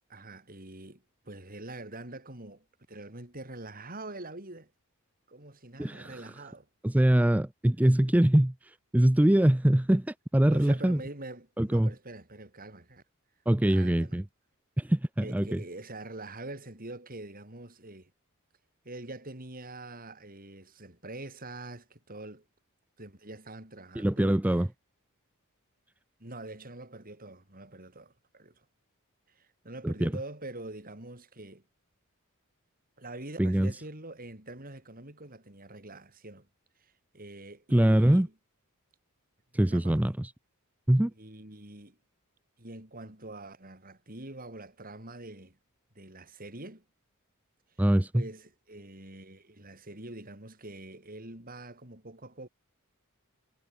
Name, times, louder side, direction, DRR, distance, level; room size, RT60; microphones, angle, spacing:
voice 1, 0.1-4.7 5.3-6.7 10.5-13.0 13.6-14.2 15.2-18.1 18.8-22.4 23.0-24.6 26.2-28.7 29.3-31.6 33.0-36.5 36.8-38.3 39.5-40.1 41.1-42.0 42.6-45.6 46.0-46.8 48.1-52.5, right 2 dB, 40° right, 5.4 m, -45 dB
voice 2, 5.8-6.2 6.8-11.0 11.6-11.9 13.5-14.2 14.8-15.6 24.0-24.7 29.8-30.1 33.4-33.7 37.7-38.3 39.5-40.3 40.9-41.1 47.8-48.2, right 1 dB, 5° right, 0.4 m, -23 dB
head